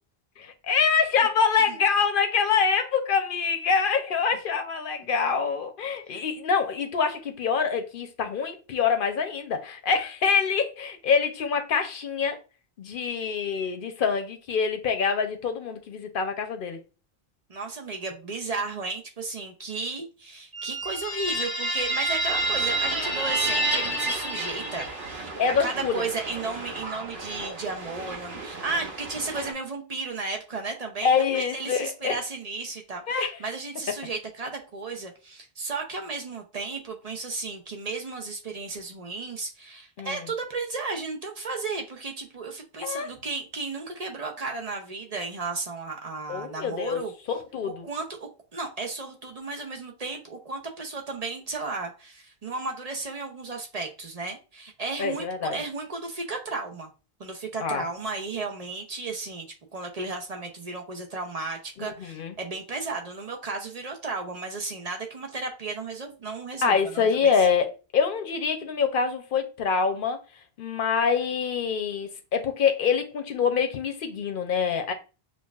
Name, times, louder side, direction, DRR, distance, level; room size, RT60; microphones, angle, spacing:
voice 1, 0.4-12.4 12.8-16.8 25.4-26.1 31.0-32.2 33.1-33.4 40.0-40.3 42.8-43.1 46.3-47.0 47.3-47.9 55.0-55.6 57.6-57.9 61.8-62.4 66.6-70.2 70.6-74.9, left 6 dB, 60° left, 0.8 m, -25 dB
voice 2, 17.5-25.3 25.6-47.1 47.8-56.9 57.2-59.5 59.7-67.3, right 3 dB, 40° right, 0.7 m, -34 dB
sound 1, 20.5-25.3, right 2 dB, 20° right, 1.3 m, -28 dB
sound 2, 22.3-29.5, right 3 dB, 80° right, 1.2 m, -38 dB
6.1 x 2.4 x 2.3 m
omnidirectional pair, 1.0 m